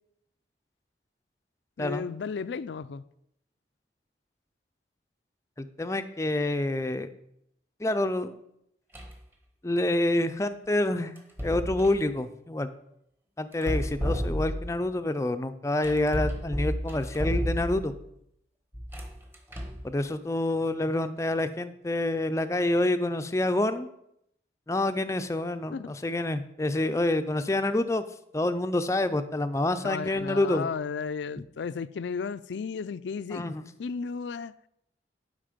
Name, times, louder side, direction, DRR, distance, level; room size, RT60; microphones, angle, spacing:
voice 1, 1.8-3.0 25.7-25.9 29.8-34.5, left 5 dB, 85° left, 0.4 m, -34 dB
voice 2, 5.6-7.1 7.8-8.3 9.6-11.1 11.4-12.7 13.4-17.9 19.8-23.9 24.7-28.0 28.3-30.7 33.3-33.6, left 1 dB, 15° left, 0.4 m, -27 dB
sound 1, 8.9-9.3 11.2-12.1 13.5-14.8 15.8-18.0 18.7-19.9, equal, 10° right, 0.9 m, -32 dB
11.0 x 5.2 x 5.1 m
head